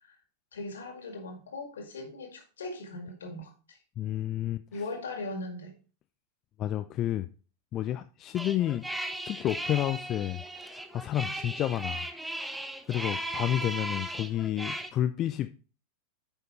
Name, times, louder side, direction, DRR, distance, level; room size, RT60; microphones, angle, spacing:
voice 1, 0.5-3.8 4.7-5.8, left 2 dB, 65° left, 4 dB, 2.0 m, -39 dB
voice 2, 4.0-4.6 6.6-7.3 7.7-8.8 9.3-12.1 12.9-15.5, left 12 dB, 30° left, 10 dB, 0.4 m, -30 dB
sound 1, 8.3-14.9, right 1 dB, 5° right, 0.7 m, -37 dB
9.4 x 5.4 x 3.3 m, 0.36 s
figure-of-eight pair, 90°, 0 cm